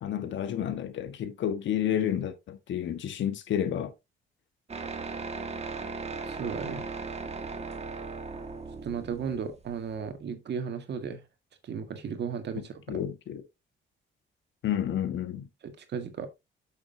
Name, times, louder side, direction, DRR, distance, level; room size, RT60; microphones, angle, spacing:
voice 1, 0.0-3.9 12.9-13.4 14.6-15.5, left 10 dB, 70° left, 1.4 m, -30 dB
sound 1, 4.7-10.1, right 4 dB, 30° right, 1.5 m, -37 dB
voice 2, 6.2-6.9 8.8-11.2 11.6-13.0 15.6-16.3, right 6 dB, 60° right, 1.8 m, -35 dB
8.7 x 6.6 x 2.7 m
cardioid pair, 90°, 20 cm